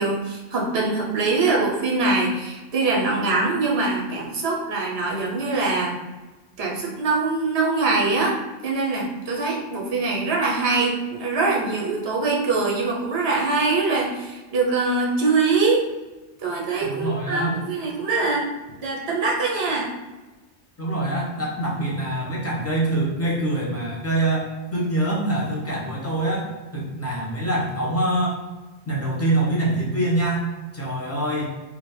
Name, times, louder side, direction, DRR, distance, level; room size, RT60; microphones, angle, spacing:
voice 1, 0.0-6.0 6.6-15.8 16.4-18.5 18.8-19.9, right 3 dB, 70° right, -2 dB, 1.1 m, -23 dB
voice 2, 16.8-17.5 20.8-28.3 28.9-30.5 30.7-31.5, right 1 dB, 15° left, -5 dB, 0.9 m, -25 dB
3.8 x 2.1 x 4.4 m, 1.2 s
omnidirectional pair, 1.1 m